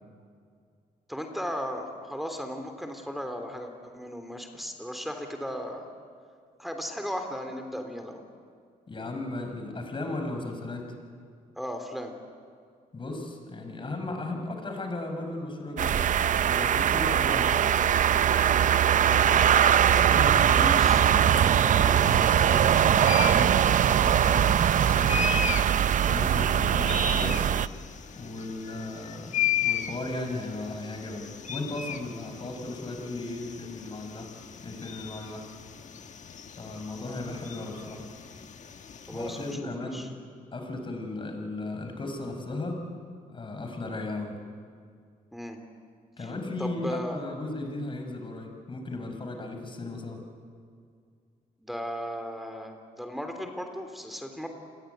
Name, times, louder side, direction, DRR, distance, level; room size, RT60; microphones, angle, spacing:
voice 1, 1.1-5.9 6.6-8.2 11.6-12.1 19.1-19.4 20.5-21.0 39.1-39.5 39.8-40.1 45.3-45.6 46.2-46.3 46.6-47.2 51.6-54.5, equal, ahead, 5 dB, 3.4 m, -36 dB
voice 2, 8.9-10.9 12.9-16.0 16.3-17.8 20.0-25.3 26.1-27.4 28.2-29.3 29.6-34.3 34.6-35.5 36.6-38.0 39.1-40.1 40.5-42.8 43.3-44.4 46.2-50.2, left 2 dB, 35° left, 4 dB, 5.7 m, -36 dB
sound 1, 15.8-27.7, right 9 dB, 55° right, 0.7 m, -21 dB
sound 2, 21.9-39.5, left 8 dB, 50° left, 1.6 m, -36 dB
28.5 x 21.0 x 9.4 m, 2.2 s
cardioid pair, 105°, 15 cm